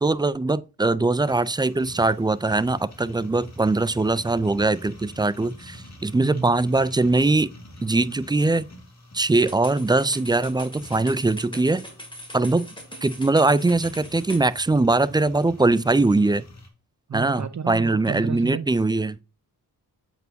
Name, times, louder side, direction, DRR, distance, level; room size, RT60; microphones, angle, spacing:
voice 1, 0.0-7.5 7.8-8.6 9.1-11.8 12.3-12.7 13.0-16.4 17.1-19.2, right 2 dB, 10° right, 0.3 m, -21 dB
sound 1, 1.2-16.7, left 1 dB, 40° left, 2.3 m, -46 dB
voice 2, 6.2-6.6 17.1-18.7, right 6 dB, 45° right, 0.7 m, -31 dB
sound 2, 9.3-14.5, equal, 10° left, 2.5 m, -41 dB
7.8 x 4.6 x 2.7 m
cardioid pair, 50°, 41 cm